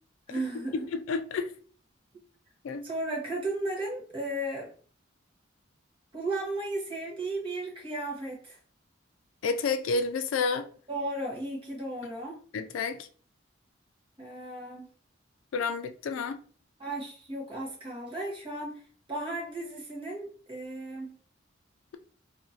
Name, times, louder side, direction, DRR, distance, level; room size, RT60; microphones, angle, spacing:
voice 1, 0.3-0.9 2.8-4.7 6.1-8.6 10.9-12.4 14.2-14.8 16.8-18.7 19.1-21.1, right 2 dB, 25° right, 1.1 m, -35 dB
voice 2, 0.9-1.5 2.6-2.8 9.4-10.7 12.5-13.1 15.5-16.4, left 4 dB, 85° left, 0.3 m, -30 dB
2.8 x 2.5 x 2.7 m
head